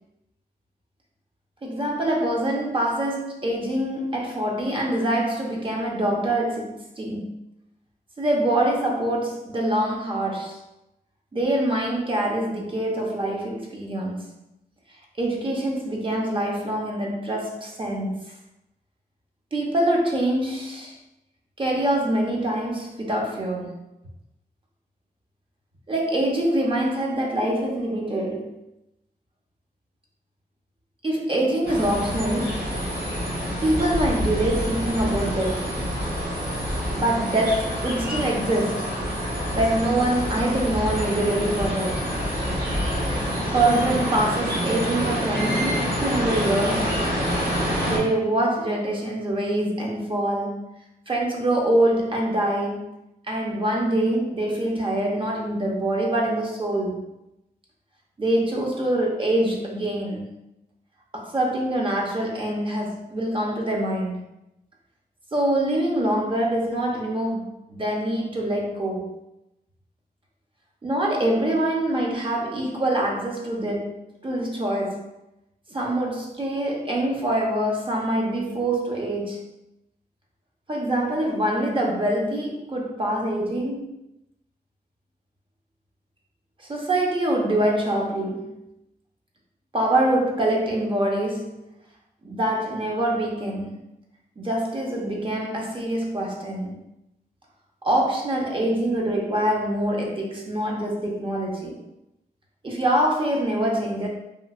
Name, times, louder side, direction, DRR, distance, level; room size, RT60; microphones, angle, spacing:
voice 1, 1.6-7.4 8.2-10.6 11.3-14.2 15.2-18.2 19.5-21.0 21.6-23.9 25.9-28.6 31.0-32.7 33.6-35.8 36.9-39.0 39.5-42.1 43.4-47.0 47.8-50.6 51.1-52.9 53.3-57.1 58.2-60.3 61.1-64.2 65.3-69.2 70.8-75.1 75.7-79.5 80.7-84.0 86.6-88.6 89.7-91.7 92.2-93.8 94.4-96.7 97.8-101.8 102.6-104.1, right 1 dB, 30° right, -1 dB, 0.8 m, -25 dB
sound 1, 31.6-48.0, equal, 65° right, 1.5 m, -27 dB
3.1 x 2.7 x 2.4 m, 0.89 s
cardioid pair, 75°, 17 cm